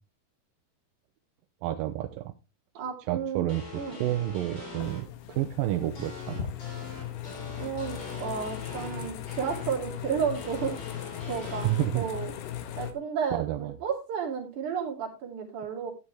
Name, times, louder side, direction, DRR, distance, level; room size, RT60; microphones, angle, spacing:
voice 1, 1.6-2.3 3.1-6.5 11.6-12.1 13.3-13.7, right 14 dB, 75° right, 7 dB, 2.2 m, -30 dB
voice 2, 2.8-3.5 3.8-4.0 7.6-10.8 11.3-12.3 12.7-15.9, right 7 dB, 50° right, 1 dB, 4.0 m, -32 dB
sound 1, 3.5-5.0 6.0-9.7 10.3-11.9, left 3 dB, 30° left, 3.9 m, -42 dB
sound 2, 4.8-12.9, left 11 dB, 80° left, 3.2 m, -38 dB
12.5 x 9.3 x 3.4 m, 0.28 s
omnidirectional pair, 4.6 m